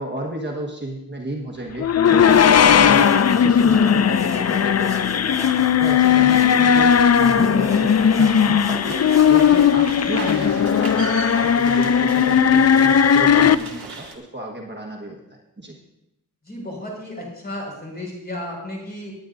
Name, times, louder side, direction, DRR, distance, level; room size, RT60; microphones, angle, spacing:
voice 1, 0.0-5.4 5.8-9.0 9.3-15.2 15.6-15.7, right 1 dB, 30° right, 0 dB, 1.4 m, -32 dB
sound 1, 1.8-13.5, left 8 dB, 45° left, 0.4 m, -16 dB
sound 2, 2.1-9.7, right 1 dB, 10° right, 1.1 m, -38 dB
Rain in the Rainforest with Riflebird, 8.9-14.1, right 4 dB, 90° right, 1.7 m, -36 dB
voice 2, 16.4-19.1, left 1 dB, 25° left, -2 dB, 5.3 m, -33 dB
19.5 x 9.7 x 2.6 m, 0.86 s
wide cardioid pair, 95°, 36 cm